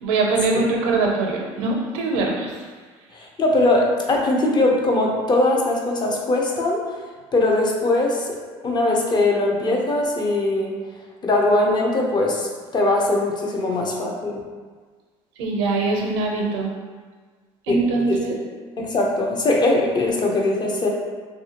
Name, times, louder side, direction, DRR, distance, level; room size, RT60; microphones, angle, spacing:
voice 1, 0.0-2.6 15.4-16.7 17.7-18.4, right 3 dB, 85° right, -1 dB, 0.5 m, -22 dB
voice 2, 3.1-6.8 7.3-8.4 8.6-10.7 11.2-14.4 17.7-17.8 18.1-18.4 18.8-20.9, left 2 dB, 30° left, -1 dB, 0.6 m, -21 dB
2.6 x 2.5 x 2.8 m, 1.5 s
supercardioid pair, 85°, 14 cm